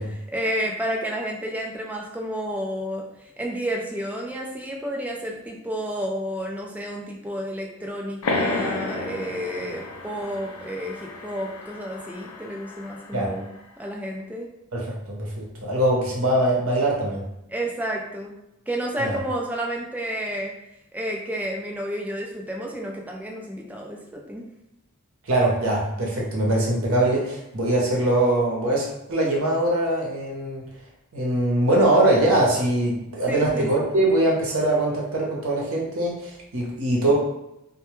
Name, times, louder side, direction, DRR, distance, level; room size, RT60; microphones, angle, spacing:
voice 1, 0.0-13.5 13.8-14.5 17.5-18.4 18.7-20.5 20.9-24.4 33.3-33.7, equal, 5° right, -1 dB, 0.4 m, -31 dB
sound 1, 8.2-13.5, left 2 dB, 85° left, 0.4 m, -32 dB
voice 2, 14.7-17.2 19.0-19.2 25.3-30.6 31.1-37.1, right 1 dB, 70° right, -3 dB, 0.8 m, -22 dB
2.2 x 2.1 x 3.0 m, 0.87 s
head